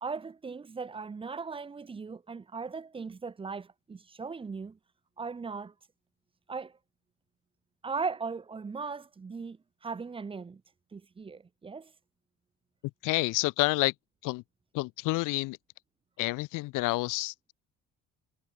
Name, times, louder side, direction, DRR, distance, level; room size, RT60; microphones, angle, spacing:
voice 1, 0.0-4.8 5.2-5.7 6.5-6.7 7.8-9.6 9.8-10.6 10.9-11.9, right 4 dB, 15° right, 1.0 m, -38 dB
voice 2, 13.0-13.9 14.2-14.4 14.7-15.6 16.2-17.5, left 22 dB, 75° left, 0.5 m, -29 dB
cardioid pair, 165°, 32 cm